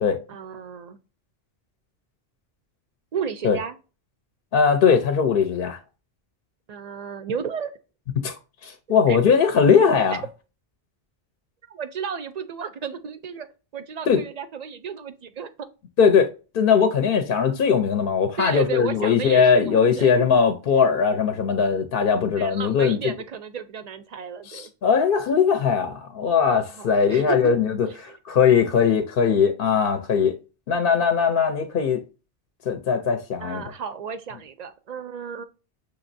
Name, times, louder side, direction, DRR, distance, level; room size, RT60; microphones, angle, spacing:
voice 1, 0.3-1.0 3.1-3.8 6.7-7.7 9.1-9.2 11.7-13.5 13.7-15.7 18.4-20.3 22.4-24.7 26.8-27.6 27.8-28.2 33.4-35.4, right 6 dB, 55° right, 0.5 m, -33 dB
voice 2, 4.5-5.8 8.2-8.4 8.6-10.2 14.1-14.2 16.0-16.3 16.5-23.0 24.5-30.4 30.7-32.0 32.7-33.6, left 6 dB, 65° left, 0.7 m, -20 dB
6.4 x 2.9 x 2.6 m
omnidirectional pair, 1.1 m